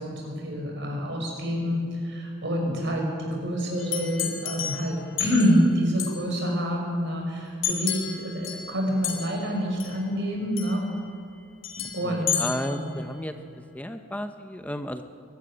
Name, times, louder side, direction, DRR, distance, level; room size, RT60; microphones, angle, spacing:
voice 1, 0.0-10.9 11.9-12.4 12.7-12.9, equal, 65° right, 1 dB, 6.0 m, -27 dB
voice 2, 2.7-3.1 12.0-13.4 13.7-15.1, left 1 dB, 10° left, 7 dB, 0.8 m, -33 dB
sound 1, 3.8-5.6 6.0-6.2 7.6-8.8 9.0-9.5 9.8-10.0 10.6-11.0 11.6-12.9, left 9 dB, 85° left, 2.9 m, -32 dB
22.5 x 13.0 x 10.0 m, 2.3 s
head